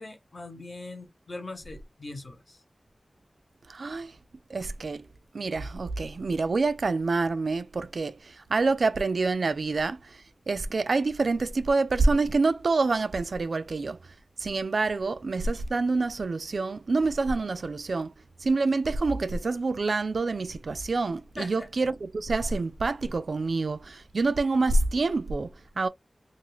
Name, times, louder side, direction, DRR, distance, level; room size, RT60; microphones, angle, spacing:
voice 1, 0.0-2.6 21.4-21.9, left 2 dB, 55° left, 1.0 m, -41 dB
voice 2, 3.7-4.2 4.5-5.1 5.3-18.1 18.4-25.9, right 3 dB, 75° right, 0.3 m, -27 dB
2.4 x 2.4 x 3.1 m
wide cardioid pair, 75°, 0 cm